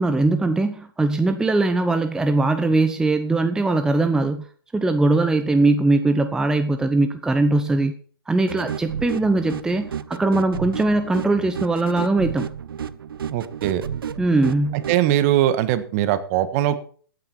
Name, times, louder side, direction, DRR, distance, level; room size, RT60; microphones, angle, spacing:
voice 1, 0.0-4.5 4.7-7.9 8.3-12.5 14.2-14.8, right 2 dB, 5° right, 8 dB, 0.7 m, -20 dB
sound 1, 8.5-15.0, right 8 dB, 75° right, 0.8 m, -32 dB
voice 2, 13.3-13.8 14.9-16.8, right 12 dB, 40° right, 12 dB, 1.4 m, -21 dB
15.0 x 9.6 x 4.4 m, 0.44 s
hypercardioid pair, 130°, 12 cm